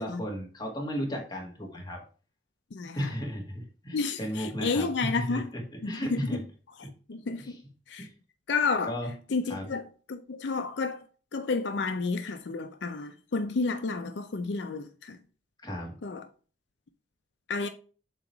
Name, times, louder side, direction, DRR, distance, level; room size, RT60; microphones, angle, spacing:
voice 1, 0.0-2.0 3.0-6.4 6.8-6.9 7.4-7.6 8.0-8.1 8.9-9.1 9.5-9.7 15.6-16.0, equal, 25° left, 1.9 m, -35 dB
voice 2, 2.7-3.1 3.9-5.5 5.8-6.2 7.1-7.6 7.9-8.1 8.5-8.9 9.3-11.0 11.3-15.2 16.0-16.3 17.5-17.7, left 4 dB, 85° left, 0.5 m, -31 dB
7.5 x 3.0 x 4.6 m
head